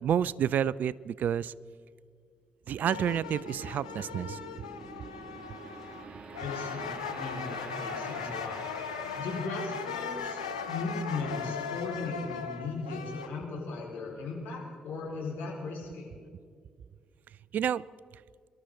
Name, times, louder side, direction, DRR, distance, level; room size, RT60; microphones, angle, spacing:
voice 1, 0.0-1.5 2.7-4.4 17.5-17.8, right 9 dB, 60° right, 22 dB, 0.4 m, -29 dB
sound 1, 2.7-13.9, right 3 dB, 40° right, 2.8 m, -48 dB
sound 2, 2.9-6.1 6.3-13.3, left 7 dB, 90° left, 0.7 m, -38 dB
voice 2, 6.4-8.6 9.1-10.4 10.7-16.1, left 3 dB, 65° left, -3 dB, 4.9 m, -37 dB
25.5 x 13.0 x 3.9 m, 2.1 s
hypercardioid pair, 40°, 3 cm